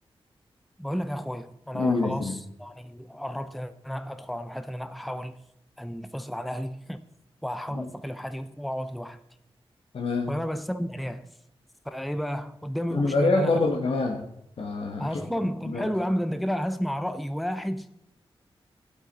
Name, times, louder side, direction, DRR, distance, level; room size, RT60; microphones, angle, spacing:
voice 1, 0.8-5.4 5.8-7.0 7.4-9.2 10.3-11.3 11.9-13.6 15.0-17.9, equal, ahead, 0.6 m, -32 dB
voice 2, 1.7-2.4 7.7-7.9 9.9-10.3 12.9-14.3 14.6-15.2 15.7-15.9, left 3 dB, 70° left, 1.1 m, -26 dB
12.5 x 7.9 x 4.0 m
wide cardioid pair, 80°, 10 cm